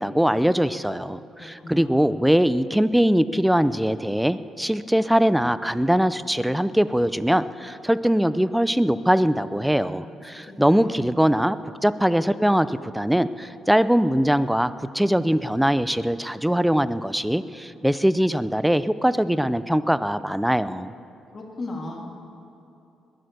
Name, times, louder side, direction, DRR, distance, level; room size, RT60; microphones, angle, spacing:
voice 1, 0.0-20.9, equal, 5° right, 15 dB, 0.5 m, -22 dB
voice 2, 1.4-2.0 9.6-10.2 10.5-11.0 21.3-22.2, left 2 dB, 35° left, -1 dB, 2.2 m, -37 dB
21.0 x 7.9 x 6.7 m, 2.9 s
cardioid pair, 90°, 0 cm